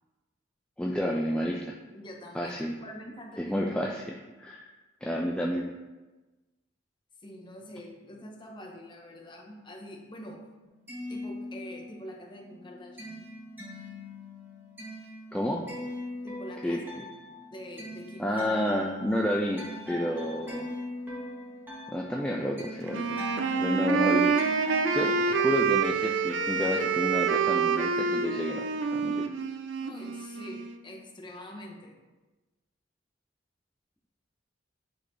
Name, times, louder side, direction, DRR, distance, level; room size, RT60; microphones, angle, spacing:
voice 1, 0.8-1.8 2.3-2.8 3.4-4.0 4.4-4.7 5.0-5.7 15.3-15.6 16.6-17.1 18.2-20.7 21.9-23.2 23.6-24.4 24.9-28.6 28.9-29.3, equal, 5° left, -1 dB, 0.4 m, -30 dB
voice 2, 1.9-3.8 7.2-10.4 11.1-13.2 16.2-17.0 17.5-18.5 29.8-32.0, left 1 dB, 25° left, 0 dB, 1.1 m, -45 dB
sound 1, 10.6-12.1 12.4-25.3, left 1 dB, 10° right, 1.6 m, -41 dB
Wind instrument woodwind instrument, 22.9-30.8, right 5 dB, 75° right, 0.4 m, -27 dB
9.3 x 4.1 x 3.2 m, 1.2 s
head